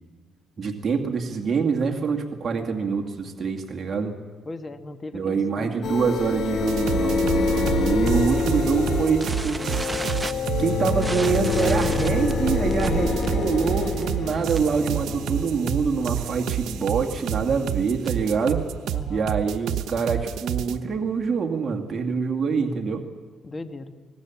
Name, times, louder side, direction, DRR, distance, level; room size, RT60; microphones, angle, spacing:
voice 1, 0.6-4.1 5.1-9.6 10.6-18.6 19.1-23.0, right 5 dB, 40° right, 2 dB, 2.4 m, -25 dB
voice 2, 4.4-6.0 18.9-19.3 23.4-24.0, left 2 dB, 30° left, 8 dB, 1.7 m, -38 dB
sound 1, 5.8-17.4, left 4 dB, 65° left, 2.9 m, -26 dB
sound 2, 6.7-20.7, right 11 dB, 80° right, 1.0 m, -29 dB
sound 3, 9.2-14.8 15.1-15.4 15.6-15.7 16.0-16.3 16.8-18.3, right 2 dB, 15° right, 1.1 m, -35 dB
25.0 x 19.5 x 7.3 m, 1.5 s
cardioid pair, 90°, 0 cm